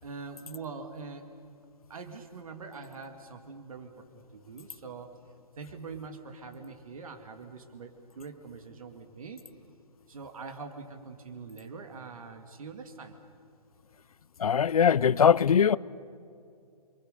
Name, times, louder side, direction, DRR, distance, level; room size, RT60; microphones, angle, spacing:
voice 1, 0.0-1.3 1.9-5.1 5.6-9.4 10.1-13.1, right 4 dB, 55° right, 2.4 m, -43 dB
voice 2, 14.4-15.8, left 7 dB, 60° left, 0.5 m, -21 dB
29.0 x 23.5 x 6.7 m
hypercardioid pair, 175°, 21 cm